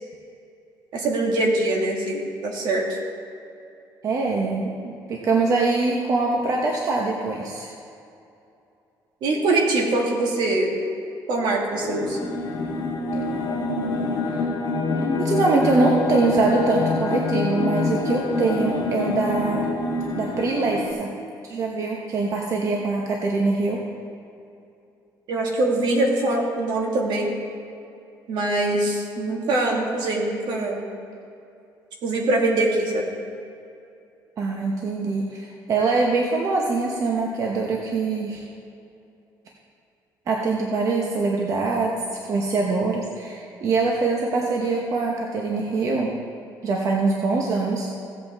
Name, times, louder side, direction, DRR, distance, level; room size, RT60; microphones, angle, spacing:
voice 1, 0.9-2.9 9.2-10.7 11.3-12.2 25.3-27.3 28.3-30.8 32.0-33.0, right 2 dB, 65° right, 0 dB, 2.0 m, -23 dB
voice 2, 4.0-7.7 14.3-14.4 15.0-19.7 20.2-21.1 21.4-23.8 34.4-38.4 40.3-41.9 42.2-46.1 46.6-47.9, right 3 dB, 45° right, -1 dB, 1.0 m, -23 dB
sound 1, 11.7-20.9, left 3 dB, 45° left, 2.0 m, -26 dB
16.0 x 8.1 x 3.5 m, 2.7 s
cardioid pair, 145°, 8 cm